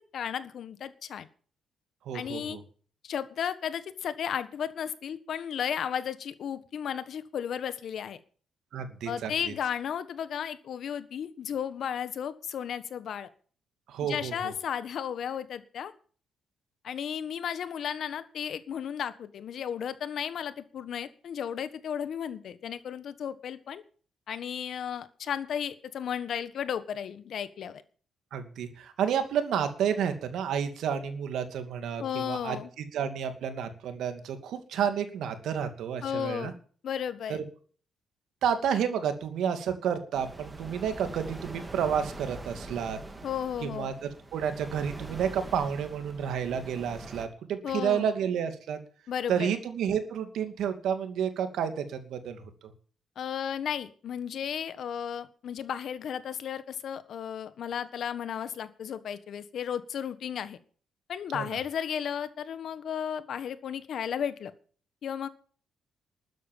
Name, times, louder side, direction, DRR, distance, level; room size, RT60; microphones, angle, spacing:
voice 1, 0.1-1.3 2.1-2.6 3.0-8.2 9.0-13.3 14.0-15.9 16.8-23.8 24.3-27.8 32.0-32.7 36.0-36.6 36.8-37.4 43.2-43.9 47.6-48.1 49.1-49.6 53.1-60.6 61.1-64.5 65.0-65.3, left 8 dB, 65° left, 13 dB, 1.5 m, -34 dB
voice 2, 2.1-2.6 8.7-9.5 13.9-14.5 28.3-32.6 32.9-36.5 37.3-37.4 38.4-43.0 43.6-43.9 44.3-48.8 49.3-52.4 61.3-61.4, right 8 dB, 75° right, 8 dB, 2.5 m, -30 dB
sound 1, 40.1-47.3, right 2 dB, 20° right, 3.0 m, -43 dB
13.0 x 9.4 x 7.4 m, 0.43 s
cardioid pair, 90°, 0 cm